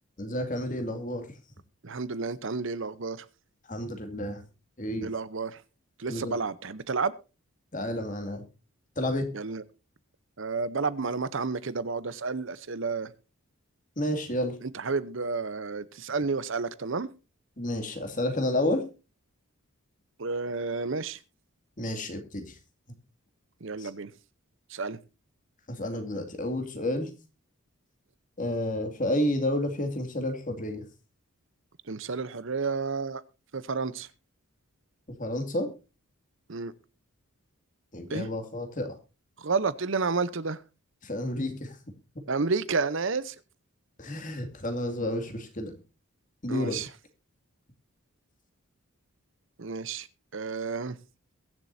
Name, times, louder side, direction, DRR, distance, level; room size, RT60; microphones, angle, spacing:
voice 1, 0.2-1.3 3.7-4.4 4.8-5.1 6.1-6.4 7.7-8.4 9.0-9.3 14.0-14.6 17.6-18.8 21.8-22.6 23.8-23.9 25.7-27.1 28.4-30.8 35.2-35.7 37.9-39.0 41.0-41.8 44.0-45.8 46.4-46.8, left 1 dB, 35° left, 2.4 m, -30 dB
voice 2, 1.8-3.3 5.0-5.6 6.0-7.1 9.3-9.6 10.4-13.1 14.6-17.1 20.2-21.2 23.6-24.1 24.7-25.0 31.8-33.2 33.5-34.1 36.5-36.7 38.1-38.3 39.4-40.6 42.3-43.4 46.5-46.9 49.6-50.1 50.3-51.0, right 4 dB, 55° right, 0.7 m, -31 dB
22.5 x 7.5 x 2.7 m
head